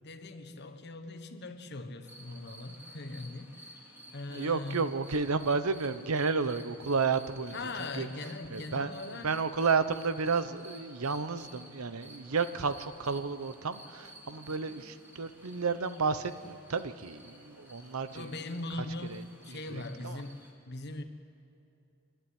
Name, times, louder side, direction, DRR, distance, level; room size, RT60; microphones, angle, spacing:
voice 1, 0.0-3.9 4.1-4.9 7.5-9.3 14.5-14.9 18.1-21.0, left 2 dB, 50° left, 8 dB, 1.2 m, -41 dB
sound 1, 2.0-20.5, equal, 10° right, 2.8 m, -53 dB
voice 2, 4.3-7.6 8.0-8.1 8.5-18.3 19.1-19.2 19.5-20.2, right 4 dB, 90° right, 12 dB, 0.9 m, -32 dB
26.0 x 11.5 x 9.9 m, 2.6 s
head